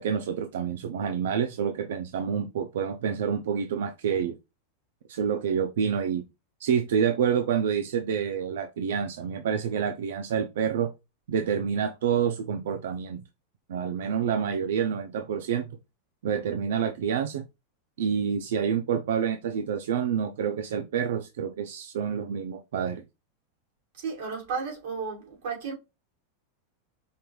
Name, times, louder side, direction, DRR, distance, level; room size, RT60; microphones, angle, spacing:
voice 1, 0.0-4.3 5.1-6.2 6.6-10.9 11.3-13.2 13.7-15.7 16.2-17.4 18.0-23.0, right 7 dB, 80° right, 0.4 m, -28 dB
voice 2, 24.0-25.7, right 5 dB, 60° right, 2.3 m, -33 dB
5.2 x 2.3 x 3.0 m
supercardioid pair, 160°, 0 cm